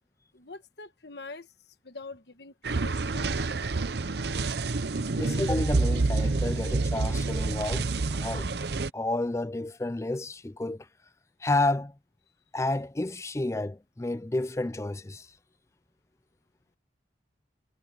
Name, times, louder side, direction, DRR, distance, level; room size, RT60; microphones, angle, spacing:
voice 1, 0.3-3.3, left 3 dB, 65° left, 1.3 m, -45 dB
sound 1, 2.6-8.9, right 3 dB, 60° right, 0.7 m, -28 dB
voice 2, 5.1-8.5 8.9-10.9 11.4-11.9 12.5-15.3, left 2 dB, 15° left, 0.4 m, -30 dB
head